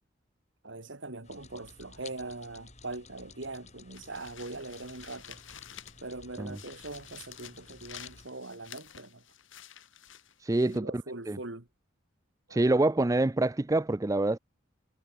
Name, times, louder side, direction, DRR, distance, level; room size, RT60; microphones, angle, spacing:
voice 1, 0.6-5.4 6.0-9.2 10.6-11.7 12.5-12.7, right 2 dB, 65° right, 2.1 m, -42 dB
sound 1, 1.2-8.3, left 4 dB, 35° left, 5.5 m, -53 dB
sound 2, 3.9-6.2 6.5-10.8, left 10 dB, 70° left, 2.9 m, -50 dB
voice 2, 10.4-11.4 12.5-14.4, right 2 dB, 15° right, 0.4 m, -26 dB
head